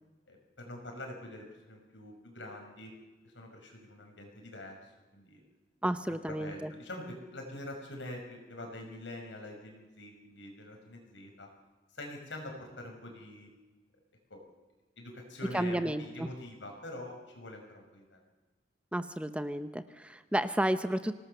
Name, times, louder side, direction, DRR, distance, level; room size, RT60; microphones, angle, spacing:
voice 1, 0.3-2.9 3.2-5.4 6.4-11.5 11.9-13.5 14.3-14.4 15.0-18.2, left 1 dB, 85° left, 2 dB, 5.6 m, -45 dB
voice 2, 5.8-6.7 15.5-16.3 18.9-21.1, right 1 dB, 5° right, 11 dB, 0.7 m, -32 dB
25.0 x 18.5 x 6.8 m, 1.2 s
head